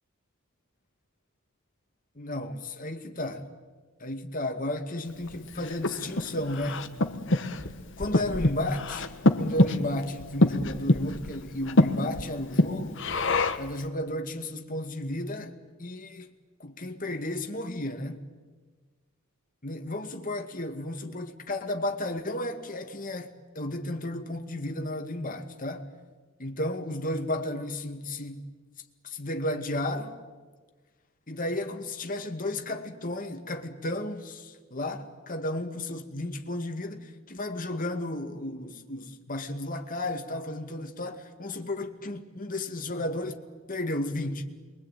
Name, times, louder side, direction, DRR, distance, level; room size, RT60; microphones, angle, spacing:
voice 1, 2.2-3.5 4.0-7.1 7.5-7.6 8.0-9.1 9.4-13.0 13.5-16.3 16.6-18.2 19.6-25.9 26.4-28.5 29.0-30.2 31.3-43.4 43.7-44.4, left 1 dB, 40° left, 2.2 m, -33 dB
Breathing, 5.3-13.8, left 1 dB, 60° left, 1.5 m, -26 dB
28.0 x 23.0 x 9.2 m
head